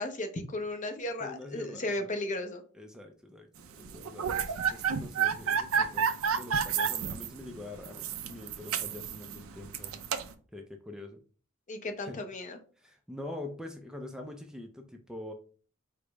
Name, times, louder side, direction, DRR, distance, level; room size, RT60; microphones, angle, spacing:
voice 1, 0.0-2.6 11.7-12.6, left 2 dB, 35° left, 0.6 m, -35 dB
voice 2, 1.2-2.1 2.7-10.0 10.5-11.2 12.0-12.2 12.8-15.3, left 2 dB, 5° right, 0.4 m, -45 dB
sound 1, 3.8-10.3, right 7 dB, 75° right, 0.5 m, -31 dB
4.9 x 2.0 x 4.5 m
head